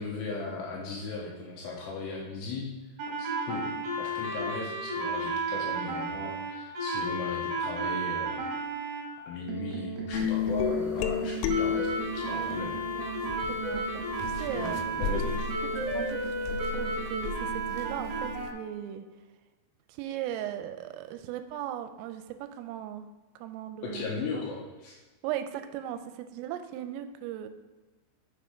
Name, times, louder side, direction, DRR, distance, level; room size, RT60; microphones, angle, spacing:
voice 1, 0.0-2.7 3.2-3.6 4.0-8.4 9.3-12.7 13.2-13.3 14.5-15.3 23.8-25.0, left 4 dB, 75° left, -2 dB, 2.9 m, -37 dB
sound 1, 3.0-9.0 9.5-18.5, right 2 dB, 65° right, 2.7 m, -33 dB
sound 2, 10.1-12.5 13.2-18.5, left 7 dB, 90° left, 3.3 m, -32 dB
voice 2, 12.9-13.2 13.5-14.0 14.4-14.8 15.1-15.2 15.7-19.0 19.9-23.1 23.4-24.4 25.2-27.5, right 11 dB, 85° right, 9 dB, 3.1 m, -38 dB
6.9 x 5.9 x 5.0 m, 1.3 s
omnidirectional pair, 5.9 m